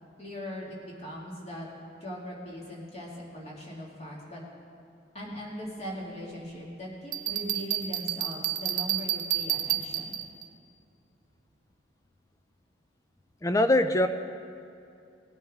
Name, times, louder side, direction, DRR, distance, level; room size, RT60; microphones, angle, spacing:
voice 1, 0.2-1.7 2.0-4.4 5.1-10.2, equal, 35° left, -4 dB, 2.2 m, -40 dB
Bell, 7.1-10.5, right 12 dB, 45° right, 0.5 m, -30 dB
voice 2, 13.4-14.1, left 1 dB, 15° left, 9 dB, 0.4 m, -22 dB
18.0 x 9.4 x 3.6 m, 2.5 s
head